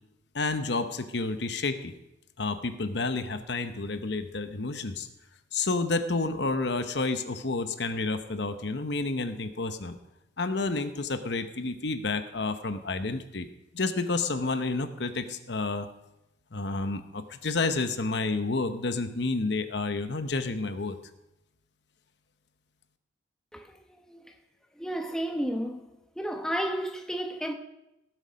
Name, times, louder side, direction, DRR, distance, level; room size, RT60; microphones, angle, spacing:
voice 1, 0.3-1.9 2.4-5.1 5.5-10.0 10.4-13.5 13.7-15.9 16.5-21.0, left 3 dB, 65° left, 0.9 m, -30 dB
voice 2, 23.5-24.3 24.8-25.9 26.2-27.5, equal, 5° left, 1.0 m, -32 dB
18.5 x 8.0 x 5.2 m
head